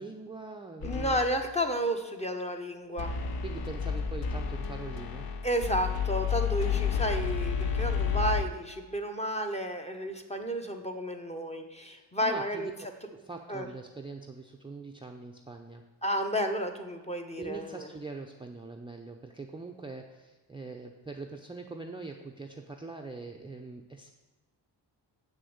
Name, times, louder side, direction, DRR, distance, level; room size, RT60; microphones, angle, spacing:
voice 1, 0.0-1.2 3.4-5.4 11.9-12.7 13.1-15.8 17.4-24.1, right 3 dB, 10° right, 1 dB, 0.6 m, -43 dB
sound 1, 0.8-1.5 3.0-8.5, left 7 dB, 55° left, 0.8 m, -31 dB
voice 2, 0.8-3.1 5.4-12.7 13.5-13.7 16.0-17.9, equal, 15° left, 5 dB, 0.9 m, -32 dB
7.2 x 6.5 x 7.9 m, 1.2 s
wide cardioid pair, 125°, 45 cm